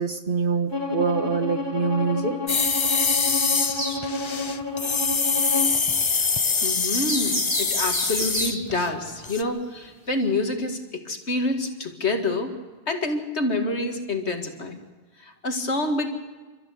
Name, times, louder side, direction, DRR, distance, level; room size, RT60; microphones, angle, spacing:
voice 1, 0.0-2.3, right 5 dB, 50° right, 6 dB, 1.7 m, -25 dB
Bowed string instrument, 0.7-5.8, left 2 dB, 20° right, 2.6 m, -30 dB
sound 1, 2.5-8.9 9.2-9.4, left 5 dB, 30° left, 0.6 m, -24 dB
sound 2, 3.7-4.0 6.9-8.5 9.7-9.8 10.5-10.6, right 1 dB, 90° right, 4.2 m, -30 dB
voice 2, 6.6-12.5 12.9-14.8 15.2-16.1, left 2 dB, 65° left, 4 dB, 2.4 m, -27 dB
29.5 x 14.0 x 6.5 m, 1.3 s
omnidirectional pair, 1.2 m